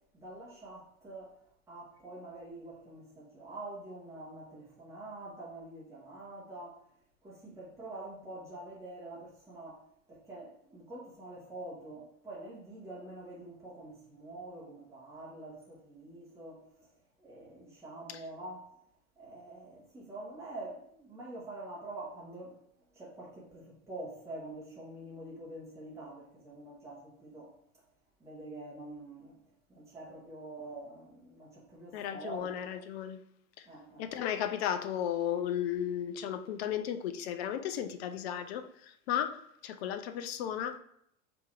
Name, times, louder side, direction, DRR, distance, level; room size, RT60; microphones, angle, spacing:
voice 1, 0.1-1.4 1.7-6.8 7.2-9.8 10.1-16.6 17.2-18.7 19.2-22.6 22.9-27.5 28.2-29.4 29.7-32.6 33.7-34.1, right 2 dB, 5° right, 1.1 m, -46 dB
voice 2, 31.9-33.2 34.0-40.8, left 10 dB, 50° left, 0.5 m, -34 dB
3.6 x 2.9 x 4.5 m
figure-of-eight pair, 80°, 42 cm